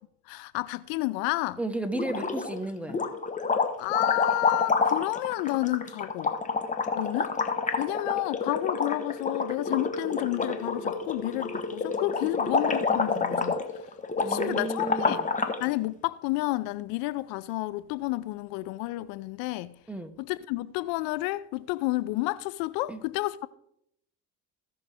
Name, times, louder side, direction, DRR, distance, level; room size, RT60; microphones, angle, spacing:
voice 1, 0.3-1.6 3.8-6.3 6.9-7.3 7.8-13.6 14.2-15.2 15.6-19.8 20.2-23.5, left 19 dB, 70° left, 0.5 m, -30 dB
voice 2, 1.6-3.0 14.2-15.3 19.9-20.1 22.9-23.0, right 2 dB, 5° right, 1.1 m, -33 dB
sound 1, 2.0-2.6 2.9-15.6, left 4 dB, 20° left, 1.2 m, -28 dB
16.5 x 6.3 x 3.5 m
supercardioid pair, 85°, 36 cm